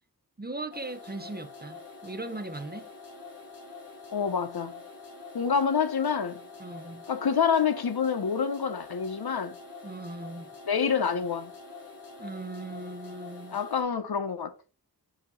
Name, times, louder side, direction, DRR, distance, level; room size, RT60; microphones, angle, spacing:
voice 1, 0.4-2.9 6.6-7.0 9.8-10.5 12.2-13.6, right 2 dB, 25° right, 0.7 m, -39 dB
sound 1, 0.7-13.8, left 4 dB, 60° left, 2.8 m, -46 dB
voice 2, 4.1-4.8 5.3-6.4 7.1-9.6 10.7-11.5 13.5-14.5, left 6 dB, 75° left, 0.9 m, -27 dB
7.3 x 2.9 x 5.4 m
wide cardioid pair, 60°, 38 cm